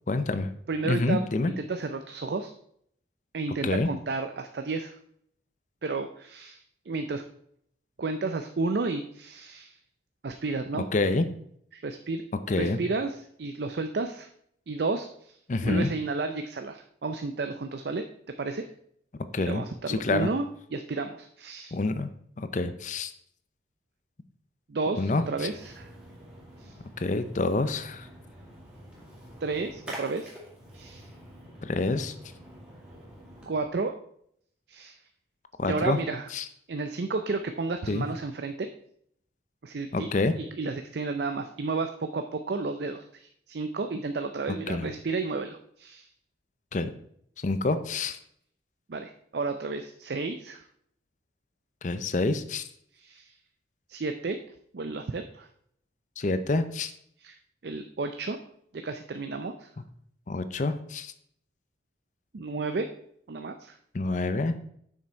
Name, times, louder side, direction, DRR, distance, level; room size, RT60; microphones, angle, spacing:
voice 1, 0.1-0.5 0.8-1.5 3.6-3.9 10.9-11.3 12.5-12.8 15.5-15.9 19.3-20.3 21.7-22.1 22.4-23.1 25.0-25.2 27.0-28.1 31.6-32.1 35.6-36.0 36.3-36.4 37.9-38.1 39.9-40.3 44.7-44.9 46.7-46.9 47.4-48.2 51.8-52.6 56.2-56.9 60.3-61.1 63.9-64.6, left 2 dB, 40° left, 10 dB, 0.5 m, -27 dB
voice 2, 0.7-1.2 1.6-2.5 3.3-5.0 5.8-7.2 8.0-9.8 10.2-10.9 11.7-12.2 12.6-14.3 14.7-15.4 15.6-18.1 18.4-18.7 19.4-20.4 20.7-21.7 24.7-25.9 26.6-26.7 29.4-30.3 30.7-31.1 33.5-33.9 34.7-35.0 35.6-36.3 36.7-38.7 39.6-40.1 40.4-46.1 48.9-50.6 52.9-53.3 53.9-54.4 54.7-55.5 57.2-57.4 57.6-58.4 58.7-59.7 62.3-62.9 63.3-63.8, right 3 dB, 60° right, 7 dB, 0.5 m, -32 dB
Splash splatter, 24.9-33.6, equal, 5° right, 2.3 m, -47 dB
7.3 x 6.1 x 4.4 m, 0.68 s
head